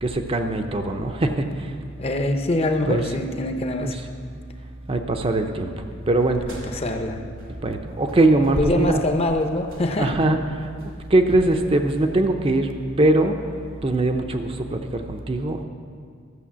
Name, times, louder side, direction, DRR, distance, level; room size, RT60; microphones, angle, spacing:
voice 1, 0.0-1.5 2.9-3.0 3.8-4.0 4.9-5.7 6.1-6.4 7.6-9.0 10.0-10.4 11.1-12.7 13.0-13.3 13.8-15.6, right 2 dB, 30° right, 5 dB, 0.6 m, -21 dB
voice 2, 2.0-3.9 6.7-7.2 8.6-10.1, left 1 dB, 30° left, 5 dB, 0.7 m, -24 dB
sound 1, 6.2-7.8 8.1-12.1, equal, 85° right, 2.4 m, -38 dB
12.5 x 6.5 x 7.3 m, 2.1 s
head